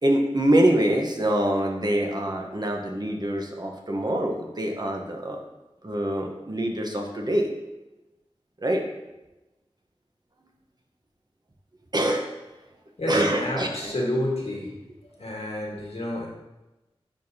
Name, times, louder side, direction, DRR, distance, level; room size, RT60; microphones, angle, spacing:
voice 1, 0.0-5.4 5.8-7.5 8.6-8.8 11.9-12.3 13.1-13.9, right 1 dB, 40° right, 2 dB, 1.0 m, -24 dB
voice 2, 13.0-14.7 15.2-16.3, left 1 dB, 75° left, -2 dB, 1.7 m, -29 dB
10.0 x 4.5 x 2.8 m, 1.0 s
wide cardioid pair, 45°, 11 cm